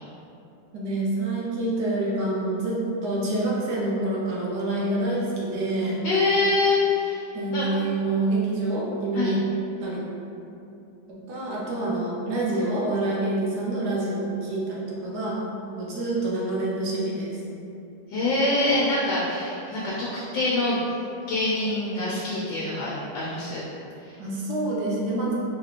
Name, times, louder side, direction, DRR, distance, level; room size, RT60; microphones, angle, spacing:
voice 1, 0.7-6.1 7.3-9.4 9.8-10.0 11.1-15.5 15.8-17.4 24.2-25.3, right 2 dB, 65° right, -5 dB, 1.2 m, -27 dB
voice 2, 6.0-7.7 9.1-9.4 18.1-20.1 20.3-20.8 21.3-23.6 24.0-24.2, left 2 dB, 85° left, -7 dB, 1.4 m, -25 dB
4.8 x 2.9 x 2.4 m, 2.7 s
omnidirectional pair, 2.0 m